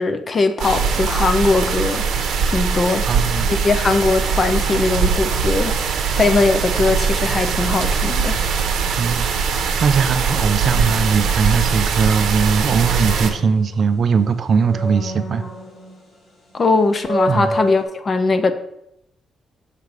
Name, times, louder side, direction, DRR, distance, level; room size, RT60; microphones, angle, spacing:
voice 1, 0.0-3.1 3.5-8.4 16.5-18.5, left 3 dB, 30° left, 10 dB, 0.5 m, -20 dB
sound 1, 0.6-13.3, right 5 dB, 90° right, 0.8 m, -21 dB
voice 2, 3.1-3.5 9.0-9.3 9.8-15.4 17.3-17.5, right 5 dB, 40° right, 10 dB, 0.4 m, -19 dB
sound 2, 10.6-12.0 12.4-14.1 14.6-16.2 16.5-16.6 17.0-17.9, equal, 75° left, 2.3 m, -29 dB
6.6 x 3.1 x 5.2 m, 0.78 s
cardioid pair, 160°, 0 cm